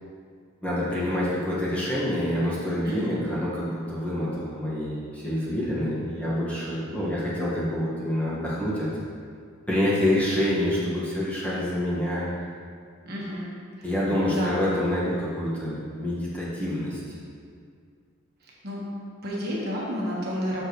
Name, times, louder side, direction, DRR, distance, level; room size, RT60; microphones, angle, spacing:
voice 1, 0.6-8.9 9.7-12.3 13.8-17.2, left 1 dB, 5° left, -9 dB, 1.5 m, -27 dB
voice 2, 2.8-3.1 13.0-13.5 13.8-13.9 14.3-14.6 18.4-18.8 19.2-20.6, equal, 50° right, -5 dB, 1.3 m, -31 dB
7.7 x 6.6 x 3.1 m, 2.2 s
head